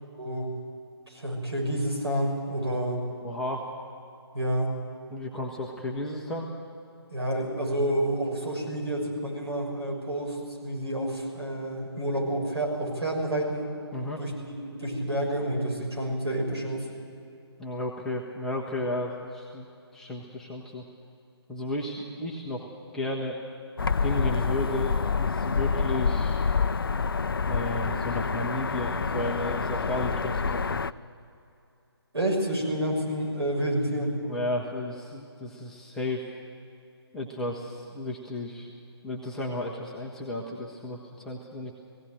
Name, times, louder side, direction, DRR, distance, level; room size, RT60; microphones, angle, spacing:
voice 1, 0.2-0.5 1.1-3.0 4.3-4.7 7.1-13.7 14.2-16.9 32.1-34.2, right 1 dB, 70° right, -1 dB, 6.5 m, -29 dB
voice 2, 3.1-3.7 5.1-6.5 13.9-14.2 17.6-19.7 19.9-20.8 21.5-23.4 24.0-26.4 27.4-30.8 34.2-36.2 37.1-38.7 39.0-41.7, left 1 dB, 5° left, -4 dB, 1.0 m, -33 dB
sound 1, 23.8-30.9, left 5 dB, 55° left, 0.5 m, -27 dB
18.0 x 16.5 x 9.1 m, 2.6 s
figure-of-eight pair, 150°, 14 cm